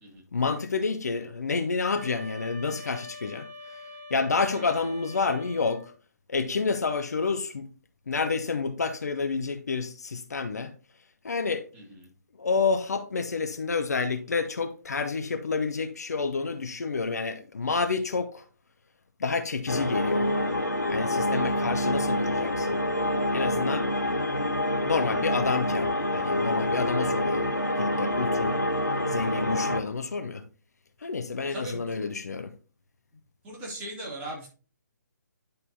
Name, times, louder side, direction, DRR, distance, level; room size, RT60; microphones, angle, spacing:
voice 1, 0.3-3.5 3.7-3.8 4.1-5.9 6.3-7.7 8.1-10.7 11.2-11.7 12.4-18.4 19.2-20.3 20.9-22.8 23.3-23.9 24.8-27.5 27.8-28.6 29.1-30.4 31.0-32.5, left 4 dB, 60° left, 0.8 m, -29 dB
sound 1, 1.8-6.0, left 2 dB, 50° right, 1.8 m, -44 dB
voice 2, 11.7-12.1 21.3-21.7 23.8-24.1 31.5-32.0 33.4-34.5, right 1 dB, 15° right, 3.0 m, -40 dB
sound 2, 19.7-29.8, left 1 dB, 85° left, 1.8 m, -27 dB
10.5 x 5.4 x 2.8 m
figure-of-eight pair, 140°, 10 cm